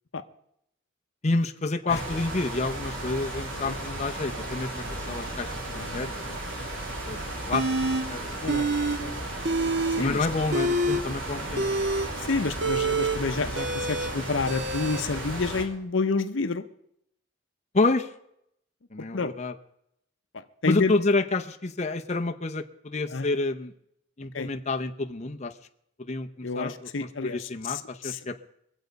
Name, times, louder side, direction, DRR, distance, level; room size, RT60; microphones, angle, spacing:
voice 1, 1.2-6.4 7.1-7.2 7.5-7.6 7.9-8.3 10.0-11.9 17.7-18.1 18.9-19.5 20.6-23.7 24.2-25.5 26.0-26.7 27.2-28.4, left 3 dB, 35° left, 5 dB, 0.8 m, -29 dB
sound 1, 1.9-15.6, right 1 dB, 85° right, 3.2 m, -35 dB
voice 2, 5.7-6.1 8.4-8.6 9.0-9.2 10.0-10.3 12.2-16.6 19.1-19.3 20.3-20.9 23.1-23.3 24.3-24.5 26.4-28.2, left 4 dB, 70° left, 9 dB, 0.8 m, -29 dB
sound 2, 7.5-8.0 8.5-9.0 9.3-10.0 10.4-15.0, right 2 dB, 60° right, 1.7 m, -27 dB
23.5 x 8.1 x 5.3 m, 0.74 s
head